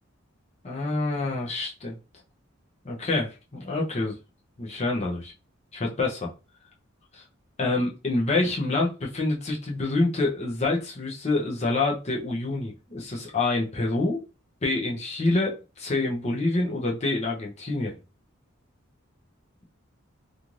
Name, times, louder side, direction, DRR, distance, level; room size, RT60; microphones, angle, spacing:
voice 1, 0.6-2.0 2.8-4.1 4.6-5.3 5.7-6.3 7.1-7.2 7.6-14.2 14.6-17.9, left 2 dB, 35° left, -2 dB, 0.6 m, -27 dB
3.0 x 2.5 x 2.5 m, 0.30 s
head